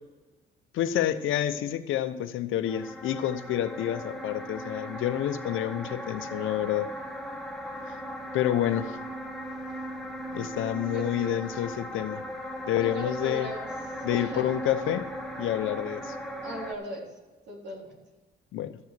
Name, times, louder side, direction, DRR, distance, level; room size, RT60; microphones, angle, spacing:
voice 1, 0.7-6.9 8.3-9.0 10.3-12.2 12.7-13.5 14.0-15.1 15.4-16.1 18.5-18.8, left 11 dB, 80° left, 0.9 m, -28 dB
sound 1, 2.7-16.7, equal, ahead, 1.6 m, -38 dB
voice 2, 10.9-11.3 12.8-13.7 14.1-14.4 16.4-17.1 17.5-18.0, right 1 dB, 60° right, 3.7 m, -38 dB
14.0 x 6.8 x 6.8 m
cardioid pair, 90°, 20 cm